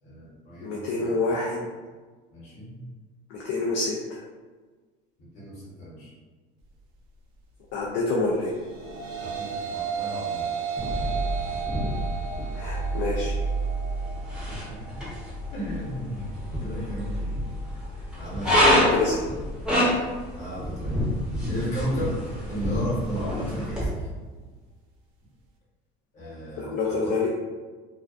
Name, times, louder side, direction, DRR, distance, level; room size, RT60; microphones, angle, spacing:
voice 1, 0.0-1.4 2.3-2.7 5.2-6.1 9.2-10.5 14.5-15.0 15.5-17.4 18.2-18.9 20.4-21.0 21.5-22.2 22.5-24.1 26.1-27.2, equal, 40° left, -7 dB, 1.0 m, -34 dB
voice 2, 0.6-1.6 3.3-4.2 7.7-8.5 12.5-13.3 18.9-19.2 26.6-27.3, left 3 dB, 60° left, -3 dB, 0.4 m, -27 dB
sound 1, 8.5-17.6, right 6 dB, 70° right, 0.5 m, -35 dB
sound 2, 10.8-23.9, equal, 5° right, 0.6 m, -27 dB
2.4 x 2.2 x 2.4 m, 1.4 s
cardioid pair, 160°, 19 cm